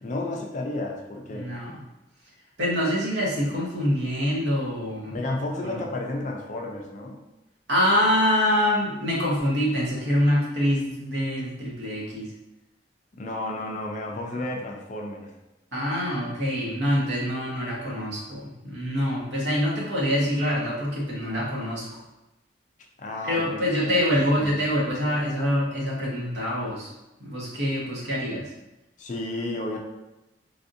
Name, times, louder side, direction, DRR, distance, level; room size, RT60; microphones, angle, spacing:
voice 1, 0.0-1.5 5.1-7.2 13.2-15.3 23.0-24.1 24.4-24.6 29.0-29.8, left 2 dB, 40° left, 1 dB, 0.4 m, -32 dB
voice 2, 1.3-1.8 2.6-5.2 5.6-5.8 7.7-12.3 15.7-22.0 23.2-26.9 27.2-28.5, equal, 60° right, -5 dB, 1.0 m, -25 dB
3.4 x 2.5 x 2.6 m, 0.98 s
head